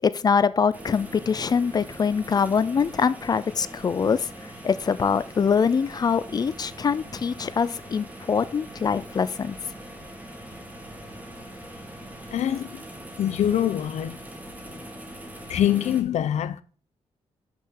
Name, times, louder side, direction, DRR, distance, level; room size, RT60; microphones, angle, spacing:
voice 1, 0.0-9.6 14.7-14.8, left 6 dB, 35° left, 0.5 m, -24 dB
sound 1, 0.7-16.0, right 1 dB, 15° right, 1.7 m, -42 dB
voice 2, 12.3-12.8 13.2-14.2 15.5-16.6, left 10 dB, 90° left, 0.7 m, -24 dB
9.0 x 5.7 x 3.8 m
wide cardioid pair, 150°, 11 cm